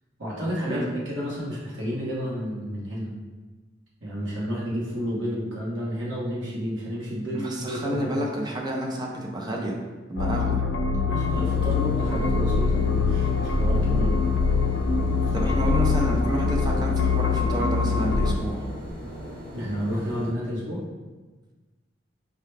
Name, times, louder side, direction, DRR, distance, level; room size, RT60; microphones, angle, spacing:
voice 1, 0.2-3.1 4.0-8.3 11.0-14.1 15.2-15.5 19.5-20.8, equal, 90° right, -5 dB, 1.2 m, -31 dB
voice 2, 7.3-9.7 10.1-10.6 15.3-18.6, right 1 dB, 20° right, -1 dB, 0.5 m, -29 dB
sound 1, 10.2-18.4, left 4 dB, 65° left, 0.4 m, -23 dB
sound 2, 11.3-20.3, equal, 50° right, 0.8 m, -39 dB
4.7 x 2.2 x 3.3 m, 1.3 s
head